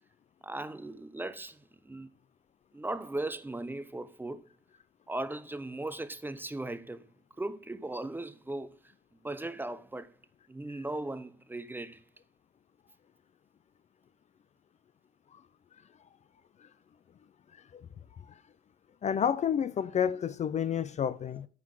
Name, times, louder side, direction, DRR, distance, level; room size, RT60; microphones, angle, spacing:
voice 1, 0.4-2.1 2.7-4.4 5.1-7.0 7.4-8.8 9.2-10.1 10.5-12.0, right 2 dB, 10° right, 0.6 m, -38 dB
voice 2, 19.0-21.5, left 8 dB, 40° left, 0.4 m, -30 dB
9.4 x 3.8 x 5.9 m
supercardioid pair, 85°, 18 cm